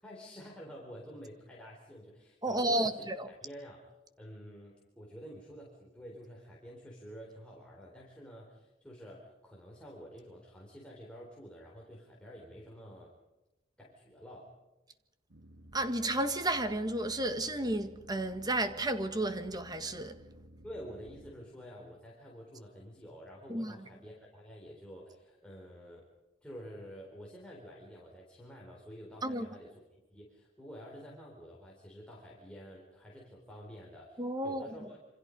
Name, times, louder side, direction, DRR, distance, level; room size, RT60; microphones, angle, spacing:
voice 1, 0.0-3.8 4.2-13.1 13.8-14.5 20.6-26.1 26.4-35.0, equal, 5° left, 4.1 m, -49 dB
voice 2, 2.4-3.3 15.7-20.1 23.5-23.7 29.2-29.5 34.2-34.7, right 1 dB, 20° right, 1.6 m, -32 dB
Boat Water vehicle, 15.3-21.3, right 1 dB, 85° right, 2.6 m, -55 dB
28.0 x 26.0 x 5.3 m
head